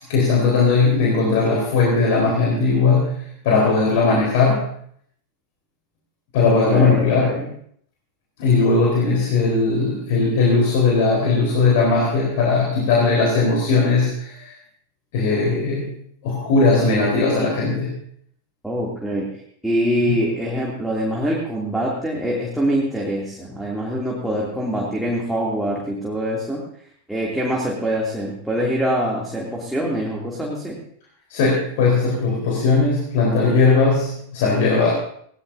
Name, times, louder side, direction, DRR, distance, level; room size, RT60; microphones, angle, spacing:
voice 1, 0.1-4.6 6.3-7.4 8.4-14.5 15.1-15.9 16.2-18.0 31.3-34.9, left 4 dB, 50° left, -2 dB, 4.2 m, -18 dB
voice 2, 6.6-7.5 18.6-19.3 19.6-26.6 27.1-30.8, equal, ahead, -4 dB, 2.8 m, -24 dB
20.5 x 17.5 x 2.7 m, 0.65 s
figure-of-eight pair, 90°, 0 cm